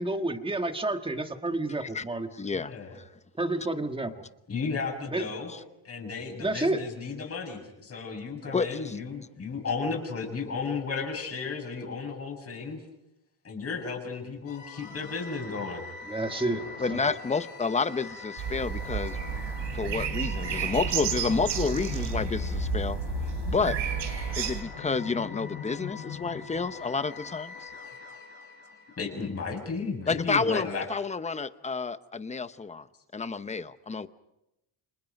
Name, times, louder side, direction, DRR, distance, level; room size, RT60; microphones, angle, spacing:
voice 1, 0.0-2.3 3.4-4.2 5.1-5.2 6.4-6.8 16.1-16.6 16.9-17.0, right 2 dB, 10° right, 6 dB, 1.7 m, -29 dB
voice 2, 1.7-2.0 2.3-3.2 5.5-5.6 8.5-9.0 16.8-19.2 19.7-23.8 24.4-27.7 30.1-32.9 33.1-34.1, left 4 dB, 15° left, 12 dB, 0.8 m, -30 dB
voice 3, 2.5-2.9 4.5-5.5 5.8-12.8 13.4-15.8 29.0-30.8, left 4 dB, 30° left, 3 dB, 7.0 m, -34 dB
sound 1, 14.5-29.6, left 8 dB, 90° left, 7.6 m, -40 dB
sound 2, 18.4-24.6, right 9 dB, 65° right, 4.0 m, -31 dB
30.0 x 26.5 x 5.3 m, 0.88 s
cardioid pair, 150°, 47 cm